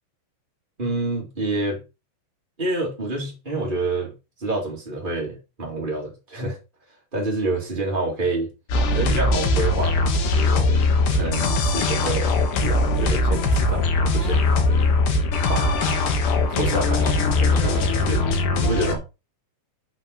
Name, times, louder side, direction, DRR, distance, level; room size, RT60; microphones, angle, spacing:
voice 1, 0.8-1.8 2.6-4.1 4.4-6.6 7.1-8.5 8.9-10.7 11.1-12.3 12.6-14.5 15.5-16.0 16.5-18.3 18.5-19.0, right 2 dB, 85° right, 0.4 m, -28 dB
sound 1, 8.7-18.9, left 2 dB, 70° left, 2.0 m, -21 dB
7.9 x 4.9 x 5.1 m
omnidirectional pair, 5.4 m